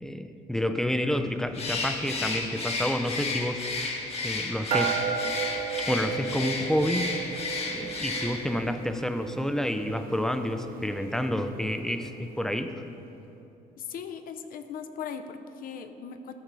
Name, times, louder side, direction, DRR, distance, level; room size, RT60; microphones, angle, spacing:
voice 1, 0.0-3.6 4.2-5.0 5.8-7.1 7.7-12.7, left 1 dB, 5° left, 8 dB, 0.5 m, -29 dB
Bird, 1.5-8.6, left 3 dB, 35° left, 1.1 m, -32 dB
sound 1, 4.7-12.4, right 7 dB, 60° right, 0.7 m, -35 dB
voice 2, 13.8-16.3, left 7 dB, 55° left, 9 dB, 0.7 m, -38 dB
12.5 x 5.4 x 4.7 m, 2.9 s
cardioid pair, 110°, 17 cm